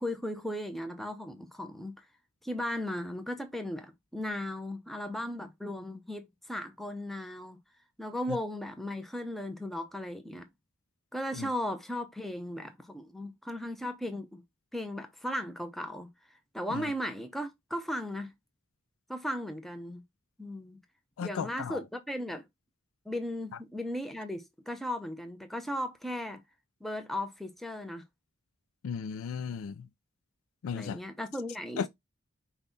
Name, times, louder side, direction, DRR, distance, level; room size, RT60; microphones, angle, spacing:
voice 1, 0.0-2.1 2.4-7.6 8.0-10.5 11.1-14.4 14.7-16.1 16.5-18.3 19.1-20.0 20.4-20.8 21.2-22.5 23.1-26.4 26.8-28.0 30.7-31.9, left 1 dB, ahead, 0.6 m, -36 dB
voice 2, 21.2-21.8 28.8-29.9 30.6-31.0 31.8-31.9, left 6 dB, 75° left, 0.3 m, -35 dB
5.4 x 2.3 x 3.9 m
head